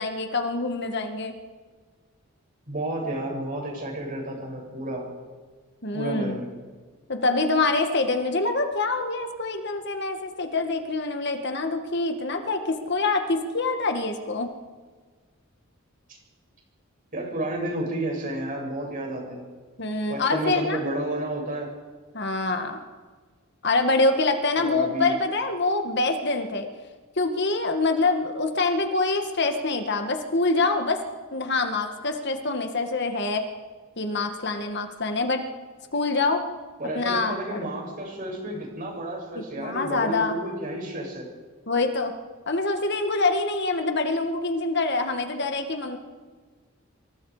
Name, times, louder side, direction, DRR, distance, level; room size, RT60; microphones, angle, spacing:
voice 1, 0.0-1.3 5.8-6.4 7.1-14.5 19.8-20.8 22.1-22.8 23.6-26.7 27.2-31.0 31.3-33.4 34.0-35.4 35.9-36.4 37.0-37.7 39.4-40.4 41.7-42.1 42.5-46.0, left 3 dB, 55° left, 6 dB, 1.9 m, -25 dB
voice 2, 2.7-5.1 5.9-6.5 17.1-19.4 20.1-21.7 24.6-25.2 36.8-41.3, right 1 dB, 40° right, 0 dB, 7.4 m, -31 dB
26.5 x 24.5 x 5.1 m, 1.5 s
head